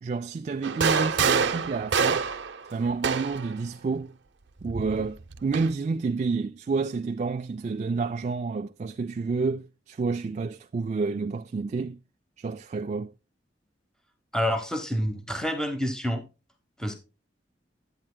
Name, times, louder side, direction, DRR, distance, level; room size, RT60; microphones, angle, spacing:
voice 1, 0.0-2.3 2.7-4.1 4.6-12.0 12.4-13.1, right 4 dB, 40° right, 0.3 m, -29 dB
sound 1, 0.6-3.5 4.6-5.7, right 6 dB, 80° right, 0.7 m, -26 dB
voice 2, 14.3-16.2 16.8-16.9, equal, 5° left, 1.0 m, -28 dB
10.5 x 8.7 x 2.2 m
head